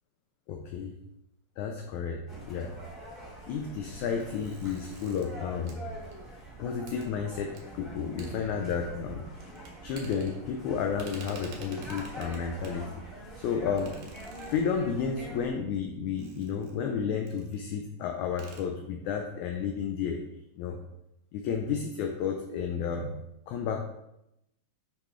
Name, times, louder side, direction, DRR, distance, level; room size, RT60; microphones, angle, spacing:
voice 1, 0.5-1.0 1.6-2.8 3.5-5.8 6.6-9.3 9.8-12.9 13.4-14.0 14.5-20.2 20.6-20.8 21.3-23.2 23.5-23.8, left 6 dB, 75° left, 3 dB, 1.8 m, -32 dB
sound 1, 2.3-15.5, right 1 dB, 10° right, 2.0 m, -45 dB
sound 2, 4.1-6.5 6.9-7.1 7.5-7.7 8.0-9.0 9.3-10.7 10.9-12.9 13.8-15.1 16.2-16.9 17.3-17.6 17.9-18.0 18.3-18.6, right 3 dB, 80° right, 2.8 m, -49 dB
8.3 x 5.8 x 3.1 m, 0.85 s
omnidirectional pair, 3.8 m